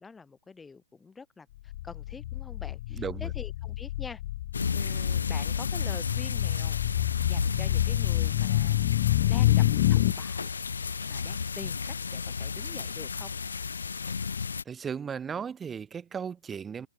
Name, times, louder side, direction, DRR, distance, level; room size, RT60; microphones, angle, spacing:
voice 1, 0.0-4.2 4.7-6.8 7.2-8.8 9.3-10.5 11.0-13.3, left 4 dB, 10° left, 5.4 m, -46 dB
sound 1, 1.7-10.1, left 15 dB, 45° left, 1.0 m, -27 dB
voice 2, 2.9-3.3 14.6-16.9, right 7 dB, 15° right, 1.5 m, -36 dB
sound 2, 4.5-14.6, left 5 dB, 90° left, 1.0 m, -33 dB
hypercardioid pair, 145°, 0 cm